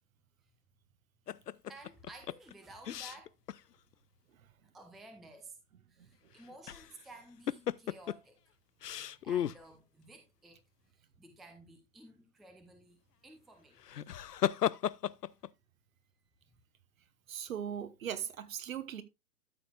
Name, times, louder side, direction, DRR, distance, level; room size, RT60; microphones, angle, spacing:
sound 1, 1.3-3.6 3.9-4.0 6.4-7.0 7.5-8.2 8.8-9.6 13.8-15.5, left 10 dB, 80° left, 0.6 m, -35 dB
voice 1, 1.7-3.3 4.6-5.6 5.9-8.4 9.2-10.6 10.9-13.9 16.4-16.6, right 2 dB, ahead, 0.5 m, -54 dB
voice 2, 17.3-19.0, right 9 dB, 60° right, 1.4 m, -39 dB
13.0 x 6.8 x 2.4 m
figure-of-eight pair, 120°, 47 cm